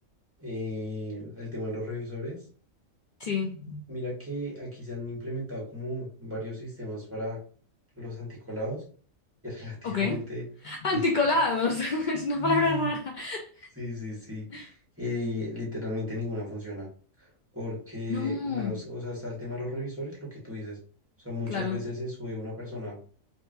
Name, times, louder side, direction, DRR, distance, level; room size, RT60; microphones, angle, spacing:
voice 1, 0.4-2.4 3.9-7.4 7.9-8.8 9.4-10.4 10.9-11.0 12.4-12.9 13.7-14.5 15.0-16.9 17.2-17.3 17.5-20.8 21.2-23.0, left 1 dB, 10° right, -5 dB, 1.6 m, -35 dB
voice 2, 3.2-3.8 9.8-10.2 10.6-13.7 14.5-14.7 18.1-18.8 21.5-21.8, left 3 dB, 70° left, 2 dB, 0.4 m, -28 dB
4.5 x 2.8 x 2.6 m, 0.41 s
omnidirectional pair, 1.4 m